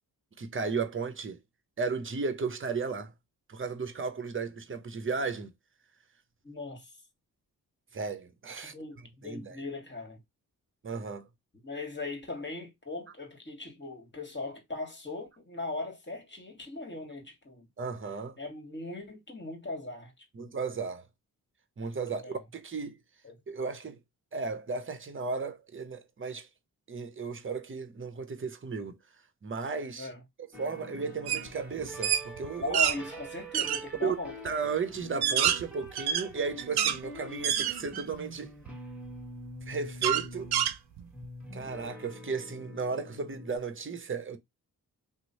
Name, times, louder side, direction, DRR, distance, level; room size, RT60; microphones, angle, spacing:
voice 1, 0.4-1.4 1.8-3.1 3.5-5.5 7.9-8.7 9.2-9.6 10.8-11.3 17.8-18.4 20.3-21.0 21.8-23.0 23.5-24.0 24.3-26.5 26.9-29.0 29.4-30.1 30.6-32.8 34.0-34.2 34.4-38.5 39.7-40.5 41.5-44.4, right 4 dB, 30° right, 0.7 m, -34 dB
voice 2, 6.4-7.0 8.6-10.2 11.6-17.7 18.4-20.1 20.4-20.5 22.1-22.4 23.2-23.4 30.0-30.2 32.6-34.3, left 2 dB, 30° left, 1.5 m, -39 dB
sound 1, 30.5-43.6, equal, 5° right, 1.3 m, -46 dB
sound 2, 31.3-31.5 31.8-33.0 33.5-33.8 34.5-34.6 35.0-37.0 37.4-38.2 38.7-38.8 40.0-41.3, right 10 dB, 75° right, 0.5 m, -27 dB
3.0 x 2.0 x 4.0 m
cardioid pair, 45°, 38 cm